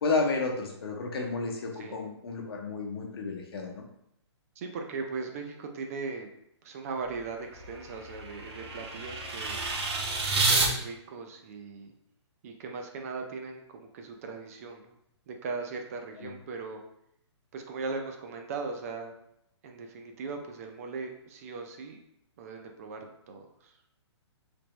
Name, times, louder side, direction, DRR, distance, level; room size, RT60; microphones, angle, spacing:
voice 1, 0.0-3.8 16.2-16.3, left 3 dB, 55° left, 2 dB, 0.8 m, -31 dB
voice 2, 4.6-6.3 6.6-9.6 10.3-11.9 12.4-14.9 15.3-16.8 17.5-19.2 19.6-22.0 22.4-23.0 23.3-23.7, right 4 dB, 30° right, 4 dB, 0.5 m, -39 dB
sound 1, 7.1-10.7, right 3 dB, 60° right, 1.2 m, -30 dB
3.4 x 3.0 x 3.0 m, 0.75 s
hypercardioid pair, 155°, 15 cm